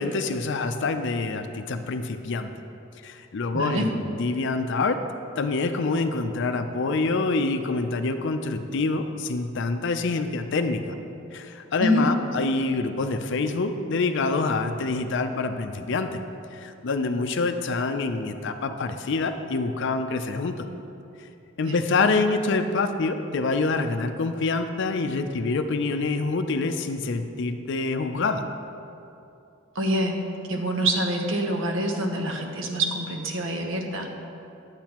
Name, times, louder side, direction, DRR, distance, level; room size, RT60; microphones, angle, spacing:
voice 1, 0.0-2.5 3.0-5.0 5.4-11.0 11.3-16.2 16.5-20.7 21.6-28.5, left 3 dB, 60° left, 8 dB, 0.5 m, -26 dB
voice 2, 3.5-3.9 11.8-12.1 21.7-21.8 29.7-30.2 30.5-34.1, equal, 70° right, 3 dB, 0.9 m, -25 dB
10.5 x 8.1 x 3.0 m, 2.7 s
head